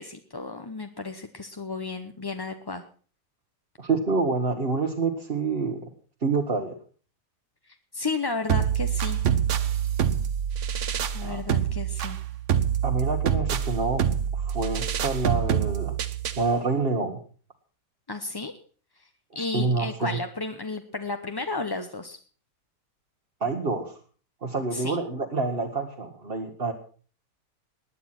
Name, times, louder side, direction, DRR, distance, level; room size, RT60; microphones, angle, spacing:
voice 1, 0.0-2.8 7.7-9.2 11.1-12.2 18.1-18.5 19.3-22.2 24.7-25.0, left 3 dB, 20° left, 6 dB, 0.6 m, -33 dB
voice 2, 3.8-5.9 6.2-6.8 11.2-11.4 12.8-14.0 14.3-16.0 16.4-17.2 19.5-20.2 23.4-24.0 24.4-26.7, right 4 dB, 35° right, 1 dB, 1.5 m, -27 dB
sound 1, 8.5-16.5, right 9 dB, 55° right, 1.1 m, -26 dB
19.5 x 9.4 x 6.0 m, 0.42 s
omnidirectional pair, 1.8 m